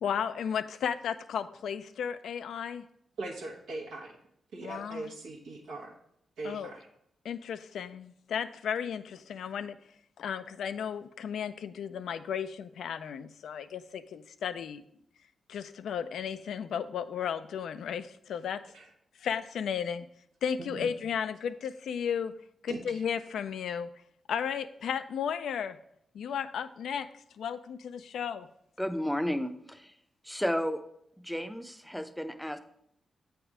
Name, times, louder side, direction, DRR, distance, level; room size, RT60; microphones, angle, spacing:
voice 1, 0.0-2.9 4.6-5.1 6.4-6.7 7.2-9.8 10.2-14.8 15.5-18.6 19.2-20.1 20.4-22.3 22.6-23.9 24.3-25.8 26.1-27.1 27.4-28.5, left 7 dB, 80° left, 11 dB, 0.3 m, -34 dB
voice 2, 3.2-4.2 4.5-6.0 6.4-6.9 18.7-18.9 20.6-20.9 22.7-23.0, right 3 dB, 90° right, -1 dB, 1.1 m, -40 dB
voice 3, 28.8-29.9 30.2-30.8 31.2-32.6, equal, 5° left, 8 dB, 0.6 m, -32 dB
7.7 x 3.4 x 4.8 m, 0.74 s
supercardioid pair, 50°, 0 cm